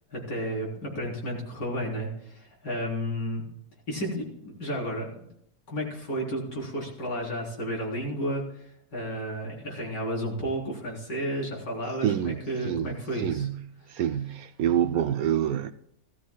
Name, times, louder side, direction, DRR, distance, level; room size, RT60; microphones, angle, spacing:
voice 1, 0.1-3.4 3.9-5.2 5.7-13.5 13.9-14.0, equal, 85° left, 4.5 m, -32 dB
voice 2, 12.0-12.4 12.6-12.9 13.2-13.6 13.9-15.7, right 10 dB, 70° right, 0.9 m, -26 dB
17.0 x 13.5 x 2.3 m
omnidirectional pair, 1.8 m